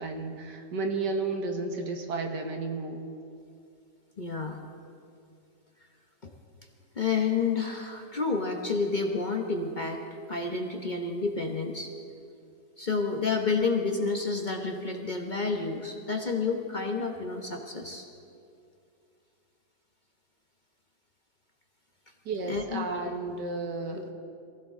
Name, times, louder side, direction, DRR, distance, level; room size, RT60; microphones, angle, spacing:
voice 1, 0.0-3.0 22.3-24.1, right 3 dB, 85° right, 4 dB, 1.9 m, -32 dB
voice 2, 4.2-4.6 6.2-6.3 7.0-10.0 10.3-11.9 12.8-18.1 22.5-22.9 23.9-24.0, left 4 dB, 35° left, 3 dB, 0.9 m, -30 dB
23.0 x 15.5 x 3.7 m, 2.5 s
omnidirectional pair, 1.8 m